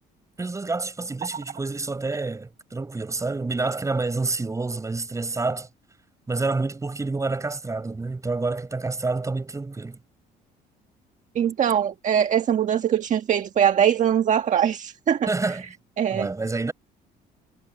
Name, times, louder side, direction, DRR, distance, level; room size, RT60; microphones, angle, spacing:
voice 1, 0.4-5.7 6.3-10.0 15.3-15.7 16.1-16.7, right 3 dB, 20° right, 6.7 m, -28 dB
voice 2, 11.3-15.6 16.0-16.3, right 9 dB, 45° right, 1.5 m, -22 dB
cardioid pair, 110°, 17 cm